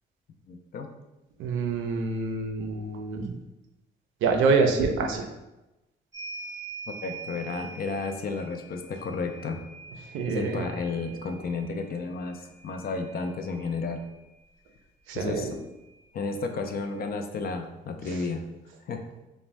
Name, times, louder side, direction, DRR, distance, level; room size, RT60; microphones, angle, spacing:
voice 1, 0.5-0.9 6.9-9.6 10.3-14.0 15.1-15.5 16.1-18.4 18.9-19.1, left 4 dB, 50° left, 6 dB, 0.4 m, -32 dB
voice 2, 1.4-3.3 4.2-5.2 10.1-10.7 15.1-15.5, right 4 dB, 90° right, 3 dB, 0.5 m, -26 dB
sound 1, 6.1-14.2 15.5-15.6 15.9-17.0, right 4 dB, 15° right, 0.5 m, -45 dB
2.5 x 2.1 x 3.1 m, 0.99 s
cardioid pair, 90°, 20 cm